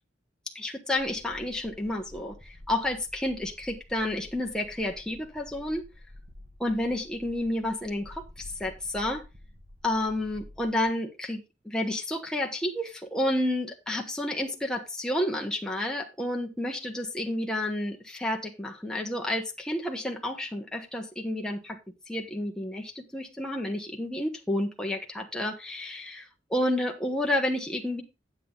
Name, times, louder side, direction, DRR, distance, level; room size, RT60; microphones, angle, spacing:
voice 1, 0.5-5.9 6.6-9.2 9.8-21.8 22.1-28.0, left 1 dB, 5° left, 1 dB, 1.1 m, -30 dB
sound 1, 1.0-10.9, left 1 dB, 45° right, 2.0 m, -50 dB
8.6 x 8.5 x 3.8 m, 0.26 s
head